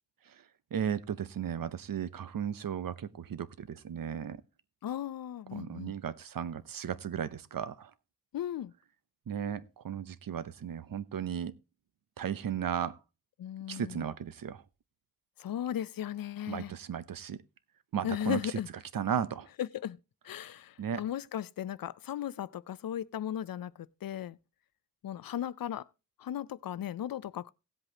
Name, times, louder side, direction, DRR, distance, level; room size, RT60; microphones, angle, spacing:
voice 1, 0.7-4.4 5.5-7.9 9.3-11.5 12.2-13.0 13.7-14.6 16.5-17.4 17.9-18.4 18.9-19.5 20.8-21.0, right 8 dB, 80° right, 0.8 m, -35 dB
voice 2, 4.8-5.9 8.3-8.7 13.4-14.0 15.4-16.7 18.0-18.7 19.6-20.0 20.2-24.4 25.0-25.9 26.2-27.5, left 10 dB, 90° left, 0.5 m, -36 dB
17.5 x 8.0 x 2.8 m
wide cardioid pair, 125°, 34 cm